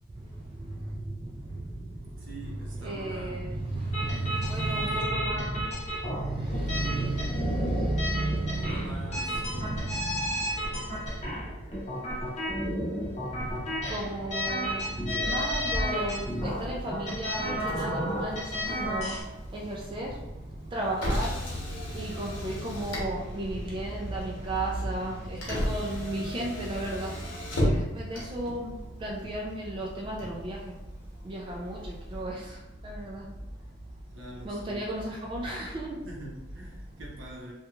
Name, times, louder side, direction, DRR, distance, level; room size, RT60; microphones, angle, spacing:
voice 1, 0.1-11.7 13.1-36.1, right 1 dB, 25° right, -3 dB, 0.3 m, -34 dB
voice 2, 2.1-3.4 8.2-9.7 34.1-34.8 36.0-37.5, right 1 dB, 75° right, -3 dB, 0.7 m, -44 dB
sound 1, 3.9-19.2, equal, 35° left, 0.8 m, -33 dB
Motor vehicle (road), 15.1-32.2, equal, 80° left, 0.9 m, -36 dB
2.9 x 2.3 x 2.3 m, 0.98 s
head